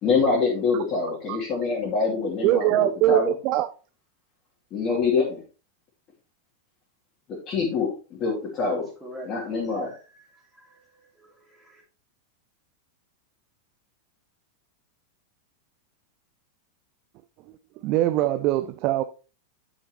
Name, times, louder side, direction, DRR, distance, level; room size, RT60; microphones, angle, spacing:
voice 1, 0.0-3.3 4.7-5.4 7.3-8.9 9.3-9.9, left 4 dB, 30° left, 2.9 m, -25 dB
voice 2, 2.4-3.7 17.8-19.0, right 14 dB, 40° right, 0.5 m, -22 dB
voice 3, 8.7-11.8, right 1 dB, 10° right, 2.8 m, -45 dB
10.5 x 6.2 x 3.0 m
figure-of-eight pair, 90°, 0 cm